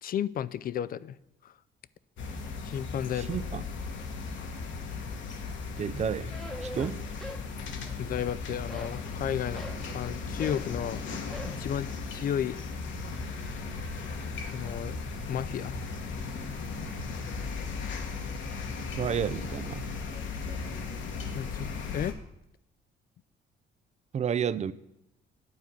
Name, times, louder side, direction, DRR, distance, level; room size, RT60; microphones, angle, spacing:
voice 1, 0.0-1.2 1.4-1.5 2.6-3.4 8.0-9.7 9.9-11.0 11.5-12.6 14.5-15.0 15.3-15.8 21.3-22.2, left 9 dB, 45° left, 0.4 m, -33 dB
sound 1, 2.2-22.1, left 4 dB, 70° left, 1.2 m, -36 dB
voice 2, 3.3-3.6 5.8-6.3 6.6-7.0 19.0-19.9 24.1-24.7, right 8 dB, 35° right, 0.4 m, -30 dB
sound 2, 6.3-7.5 7.8-8.3 8.7-9.8 10.4-10.7 11.3-11.6, equal, ahead, 1.0 m, -42 dB
9.5 x 4.6 x 7.0 m
cardioid pair, 90°, 20 cm